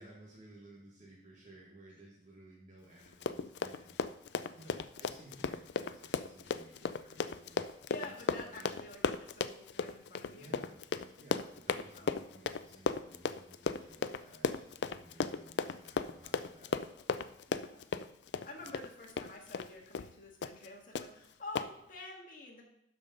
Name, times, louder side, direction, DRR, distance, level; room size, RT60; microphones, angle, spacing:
voice 1, 0.0-4.0 4.5-7.7 8.0-8.1 8.5-8.7 10.3-10.8 11.2-16.7 18.6-18.8, right 1 dB, 45° right, -5 dB, 1.7 m, -57 dB
Run, 3.1-19.7 19.9-20.1 20.4-20.7 20.9-21.1 21.5-21.7, left 5 dB, 70° left, 0.4 m, -35 dB
voice 2, 7.9-10.6 11.9-12.5 17.5-17.9 18.4-22.6, left 2 dB, 50° left, -1 dB, 1.9 m, -49 dB
12.0 x 5.2 x 3.9 m, 0.80 s
head